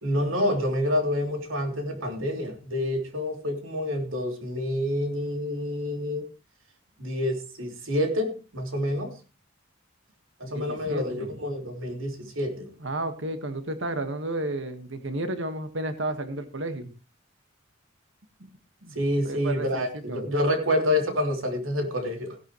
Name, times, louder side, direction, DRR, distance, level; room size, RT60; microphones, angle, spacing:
voice 1, 0.0-6.2 7.0-9.1 10.4-12.7 18.9-22.3, left 1 dB, 85° right, 4 dB, 3.2 m, -28 dB
voice 2, 10.4-11.3 12.8-16.9 18.4-18.5 18.8-19.0 19.2-20.2, right 1 dB, 65° right, 8 dB, 1.6 m, -32 dB
16.5 x 11.0 x 3.1 m, 0.31 s
head